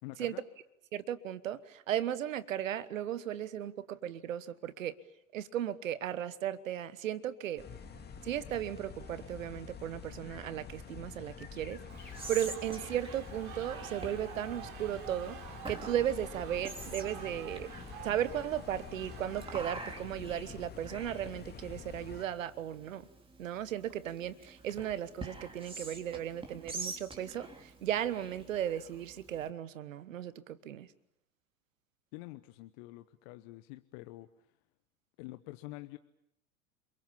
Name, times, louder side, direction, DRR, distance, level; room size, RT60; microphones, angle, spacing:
voice 1, 0.0-0.4 32.1-34.5 35.2-36.0, left 19 dB, 50° left, 11 dB, 1.0 m, -47 dB
voice 2, 0.9-4.9 5.3-7.6 8.2-15.4 15.7-17.7 18.0-23.1 23.4-30.9, right 11 dB, 70° right, 17 dB, 1.3 m, -36 dB
sound 1, 7.6-22.3, left 6 dB, 25° left, 2.4 m, -48 dB
sound 2, 7.7-8.0 8.2-8.3 8.9-9.3 10.5-11.0 11.6-20.0, right 9 dB, 55° right, 3.6 m, -50 dB
Whispering, 11.9-29.5, right 3 dB, 15° right, 3.4 m, -47 dB
30.0 x 22.5 x 7.2 m, 0.79 s
figure-of-eight pair, 85°, 41 cm